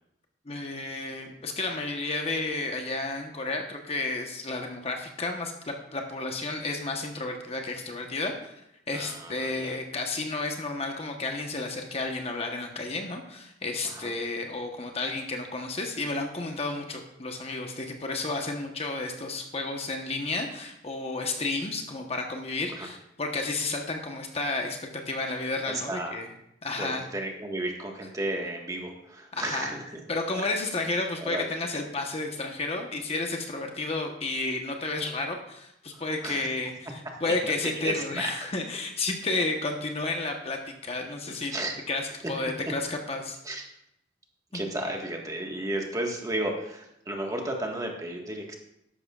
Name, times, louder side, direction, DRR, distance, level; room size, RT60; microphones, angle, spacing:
voice 1, 0.5-8.5 8.9-26.3 26.6-27.0 29.3-29.8 30.1-41.5 41.9-43.4 44.5-44.6, left 3 dB, 35° left, 3 dB, 1.0 m, -32 dB
voice 2, 8.9-9.7 13.8-14.1 22.7-22.9 25.7-26.2 26.8-29.8 31.2-31.7 35.9-36.5 37.2-37.5 37.8-38.3 41.3-41.7 43.4-43.6 44.5-48.5, right 1 dB, 20° right, 1 dB, 1.5 m, -33 dB
13.5 x 11.5 x 2.4 m, 0.80 s
head